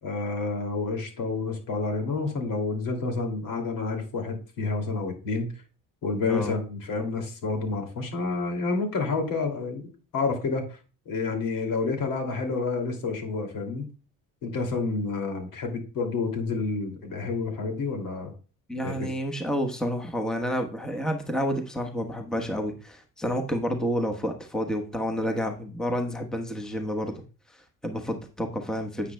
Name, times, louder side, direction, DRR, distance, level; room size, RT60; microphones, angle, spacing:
voice 1, 0.0-5.5 6.0-10.8 11.1-13.8 14.4-18.3 18.8-19.1, left 3 dB, 65° left, 3 dB, 2.6 m, -29 dB
voice 2, 6.2-6.6 18.7-27.1 27.5-29.1, equal, ahead, 4 dB, 1.1 m, -30 dB
9.7 x 8.3 x 2.2 m, 0.35 s
cardioid pair, 95°, 35 cm